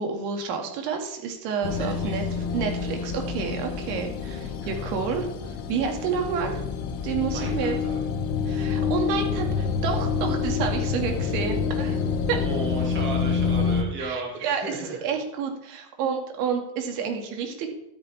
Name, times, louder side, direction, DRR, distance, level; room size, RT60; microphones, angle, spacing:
voice 1, 0.0-5.3 5.7-6.6 7.0-7.8 8.5-12.0 12.3-12.4 14.0-14.7 15.0-17.7, right 6 dB, 75° right, 3 dB, 2.3 m, -29 dB
sound 1, 1.6-13.8, left 5 dB, 60° left, 1.4 m, -27 dB
voice 2, 1.7-2.4 4.6-4.9 7.2-8.0 12.3-15.0, right 3 dB, 25° right, -1 dB, 2.3 m, -35 dB
12.5 x 8.9 x 3.5 m, 0.78 s
cardioid pair, 175°, 48 cm